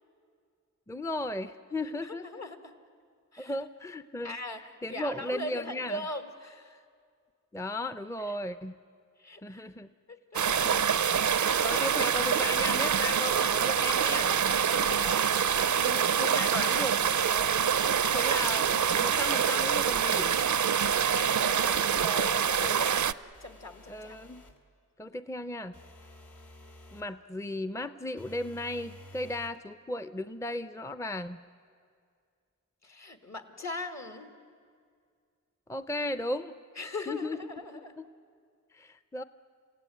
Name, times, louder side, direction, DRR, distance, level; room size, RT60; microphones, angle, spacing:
voice 1, 0.9-2.4 3.4-4.4 4.8-6.0 7.5-8.7 9.4-9.9 10.6-10.8 11.6-14.4 14.8-15.0 15.8-17.5 18.1-20.3 23.9-24.4 25.0-25.7 26.9-31.4 35.7-36.5 37.1-38.1 38.7-39.2, left 1 dB, 10° left, 12 dB, 0.6 m, -36 dB
voice 2, 2.0-2.7 3.3-3.5 4.2-6.8 8.2-8.4 9.2-9.7 10.1-10.7 11.3-11.6 14.7-15.2 21.0-23.0 23.4-24.2 32.8-34.4 36.8-38.0, left 1 dB, 55° left, 7 dB, 2.0 m, -40 dB
sound 1, 10.3-23.1, right 8 dB, 65° right, 0.5 m, -26 dB
sound 2, 23.3-24.6 25.7-27.1 28.2-29.6, left 1 dB, 70° left, 2.4 m, -52 dB
29.0 x 16.5 x 9.3 m, 2.2 s
wide cardioid pair, 70°, 31 cm